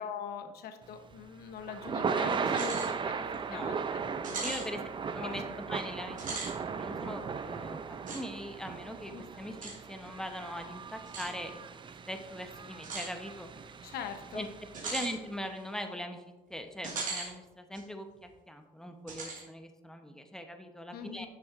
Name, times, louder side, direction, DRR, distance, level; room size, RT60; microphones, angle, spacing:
voice 1, 0.0-3.2 3.5-4.0 4.3-4.6 5.2-5.4 9.1-9.2 13.8-14.5 14.9-15.0 20.9-21.3, left 7 dB, 70° left, 8 dB, 1.0 m, -42 dB
Thunder / Rain, 0.9-15.2, right 5 dB, 30° right, 0.5 m, -37 dB
sound 1, 2.5-2.9 3.3-3.4 4.2-4.7 6.1-6.5 8.1-8.2 9.6-9.8 11.1-11.3 12.8-13.1 14.7-15.1 16.8-17.3 17.7-17.8 19.1-19.4, right 3 dB, 50° right, 2.2 m, -38 dB
voice 2, 3.1-3.7 4.4-4.8 5.1-11.6 12.1-13.5 14.3-14.5 14.8-16.2 16.5-21.3, equal, 5° left, 5 dB, 0.8 m, -41 dB
11.5 x 6.9 x 2.5 m, 1.1 s
cardioid pair, 110°, 17 cm